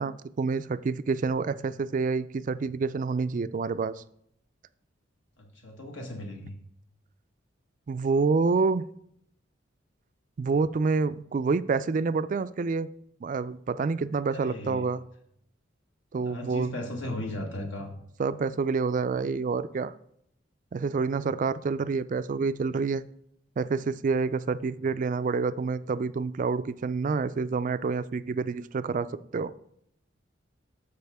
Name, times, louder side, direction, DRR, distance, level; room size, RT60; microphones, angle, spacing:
voice 1, 0.0-4.0 7.9-8.8 10.4-12.9 13.2-15.0 16.1-16.7 18.2-19.9 20.7-23.0 23.6-29.1 29.3-29.5, right 4 dB, 40° right, 14 dB, 0.3 m, -28 dB
voice 2, 5.4-6.5 14.3-14.9 16.1-17.9, left 1 dB, 70° left, 1 dB, 1.4 m, -37 dB
13.5 x 4.9 x 3.5 m, 0.71 s
head